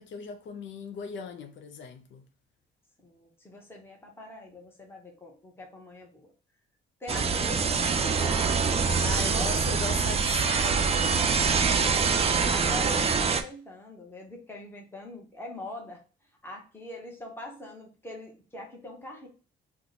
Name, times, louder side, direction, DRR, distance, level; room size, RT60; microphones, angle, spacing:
voice 1, 0.0-2.2 9.0-10.9, left 5 dB, 70° left, 0.5 m, -38 dB
voice 2, 3.0-6.3 7.0-8.8 9.1-9.6 11.4-16.0 16.4-19.3, left 1 dB, 10° left, 0.9 m, -42 dB
sound 1, 7.1-13.4, right 5 dB, 30° right, 0.4 m, -25 dB
2.9 x 2.1 x 3.8 m
cardioid pair, 90°, 20 cm